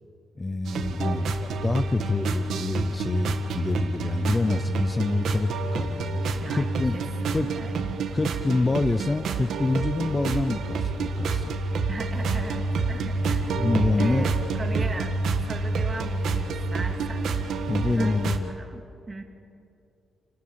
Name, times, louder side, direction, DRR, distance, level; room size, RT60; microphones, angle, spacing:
voice 1, 0.4-7.0 7.3-7.5 8.1-11.5 13.6-14.3 17.7-18.5, left 3 dB, 20° left, 11 dB, 0.5 m, -27 dB
sound 1, 0.6-18.4, right 3 dB, 80° right, 1.6 m, -28 dB
voice 2, 6.9-8.0 11.9-13.7 14.0-15.2 15.4-17.3 17.9-19.2, right 2 dB, 25° right, 4 dB, 2.1 m, -38 dB
30.0 x 12.5 x 8.7 m, 2.7 s
wide cardioid pair, 155°, 0 cm